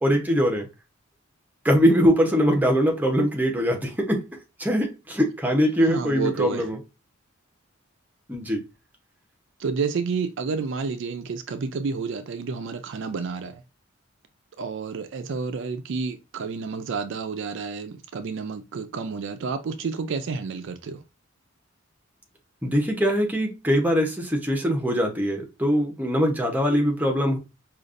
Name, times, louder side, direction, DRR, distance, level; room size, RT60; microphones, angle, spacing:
voice 1, 0.0-0.7 1.6-4.3 4.6-6.8 8.3-8.6 22.6-27.4, equal, 10° right, 0.8 m, -22 dB
voice 2, 5.8-6.7 9.6-13.6 14.6-21.0, right 5 dB, 60° right, 0.4 m, -30 dB
5.1 x 2.4 x 2.5 m
head